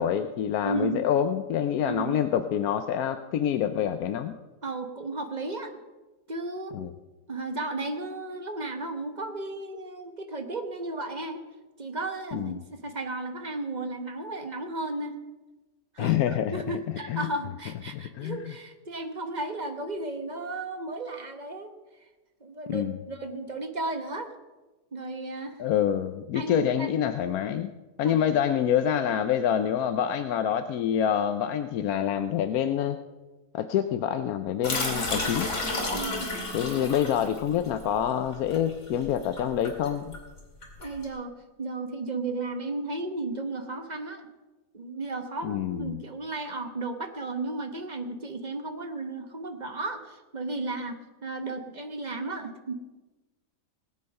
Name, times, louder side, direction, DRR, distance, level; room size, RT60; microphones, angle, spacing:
voice 1, 0.0-4.3 6.7-6.9 12.3-12.6 16.0-16.6 17.1-17.3 17.9-18.5 22.7-23.0 25.6-27.7 28.0-33.0 33.5-35.5 36.5-40.2 45.4-46.0, left 9 dB, 70° left, 9 dB, 1.0 m, -26 dB
voice 2, 0.6-1.0 1.8-2.2 4.6-5.7 6.3-6.7 7.3-11.4 11.8-15.2 15.9-21.7 22.4-24.3 24.9-25.6 26.3-26.9 28.0-28.2 35.9-36.3 40.8-44.3 44.7-52.7, right 2 dB, 30° right, 6 dB, 1.1 m, -34 dB
sound 1, 34.6-41.0, left 2 dB, 45° left, 2.7 m, -32 dB
19.0 x 8.6 x 5.4 m, 1.2 s
omnidirectional pair, 1.8 m